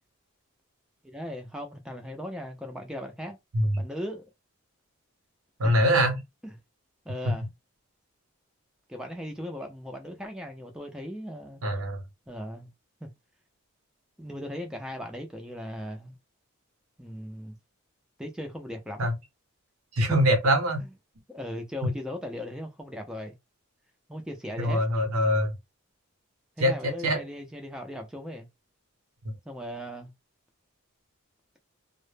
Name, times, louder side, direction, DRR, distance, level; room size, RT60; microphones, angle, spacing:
voice 1, 1.0-3.4 3.8-4.2 5.6-5.7 6.4-6.5 7.1-7.5 8.9-11.6 12.3-12.7 13.0-13.1 14.2-16.1 17.0-17.6 18.2-19.1 20.8-20.9 21.3-23.3 24.1-24.8 26.6-28.5 29.5-30.1, equal, 5° right, 0.3 m, -38 dB
voice 2, 5.6-6.2 11.6-12.0 19.0-19.1 19.9-20.8 24.6-25.5 26.6-27.2 29.2-29.3, equal, 80° right, 0.7 m, -23 dB
2.0 x 2.0 x 3.1 m
head